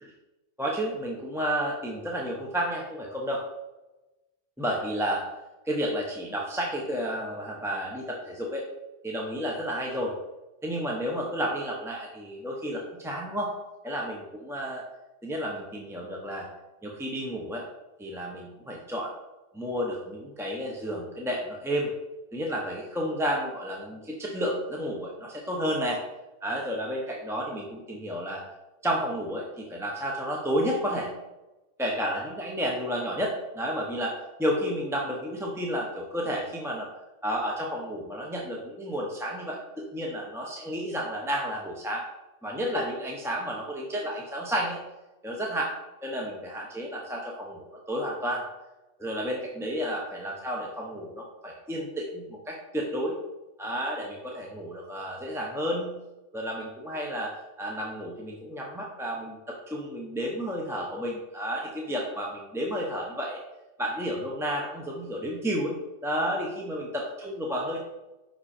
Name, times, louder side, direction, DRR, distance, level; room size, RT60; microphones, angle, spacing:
voice 1, 0.6-3.4 4.6-5.2 5.7-8.6 9.0-10.1 10.6-13.5 13.8-14.8 15.2-16.5 16.8-17.6 18.0-19.1 19.5-21.9 22.3-26.0 26.4-28.4 28.8-31.1 31.8-36.9 37.2-42.0 42.4-44.8 45.2-45.7 46.0-48.4 49.0-53.2 53.6-56.0 56.3-57.3 57.6-63.4 63.8-65.7 66.0-67.8, equal, 5° right, -2 dB, 0.5 m, -31 dB
5.5 x 5.0 x 4.3 m, 1.0 s
omnidirectional pair, 1.2 m